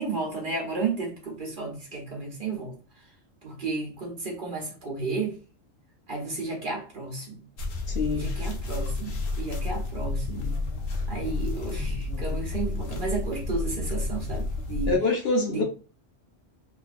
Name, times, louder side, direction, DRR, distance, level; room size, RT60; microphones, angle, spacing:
voice 1, 0.0-2.7 3.4-5.3 6.1-7.4 8.1-10.5 11.1-14.9 15.5-15.6, right 3 dB, 50° right, 0.8 m, -32 dB
sound 1, 7.6-15.0, left 3 dB, 85° left, 1.1 m, -31 dB
voice 2, 7.9-8.2 14.9-15.6, left 3 dB, 60° left, 0.7 m, -25 dB
3.1 x 2.5 x 2.4 m
omnidirectional pair, 1.4 m